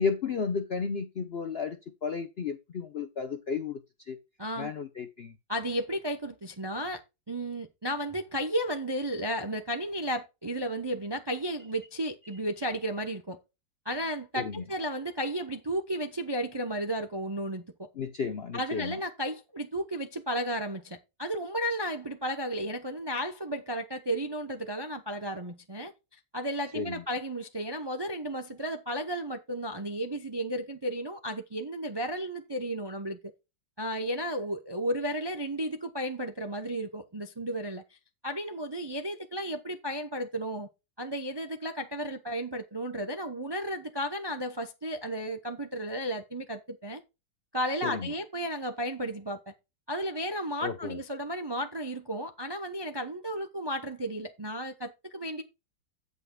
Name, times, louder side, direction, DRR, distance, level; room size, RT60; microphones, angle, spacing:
voice 1, 0.0-1.8 2.0-3.8 4.1-4.2 4.6-5.3 14.4-14.6 18.0-19.0 26.7-27.0 47.8-48.1 50.6-51.0, left 5 dB, 60° left, 0.6 m, -33 dB
voice 2, 4.4-4.7 5.5-7.0 7.3-13.4 13.8-17.9 18.5-25.9 26.3-33.2 33.8-37.8 38.2-40.7 41.0-47.0 47.5-49.5 49.9-55.4, equal, 30° right, 0.4 m, -33 dB
16.5 x 5.6 x 2.3 m
omnidirectional pair, 1.9 m